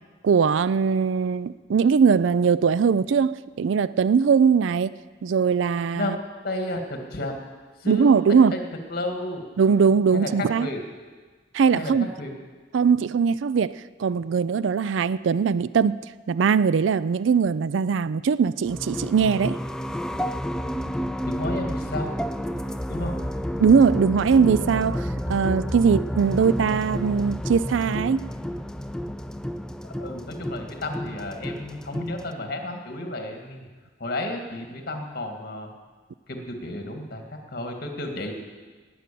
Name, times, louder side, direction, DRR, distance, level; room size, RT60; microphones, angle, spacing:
voice 1, 0.2-4.9 5.2-6.2 7.9-8.6 9.6-10.7 11.5-12.1 12.7-13.7 14.0-16.0 16.3-19.6 23.6-28.3, right 6 dB, 90° right, 18 dB, 0.4 m, -20 dB
voice 2, 6.0-7.3 7.8-8.6 8.9-9.4 10.1-10.3 10.6-10.8 11.7-12.3 21.2-22.1 22.9-23.2 29.8-33.7 34.0-35.7 36.3-38.3, left 1 dB, 55° left, 3 dB, 2.0 m, -32 dB
sound 1, 18.7-32.3, equal, 5° left, 0.4 m, -30 dB
19.0 x 7.9 x 6.9 m, 1.4 s
head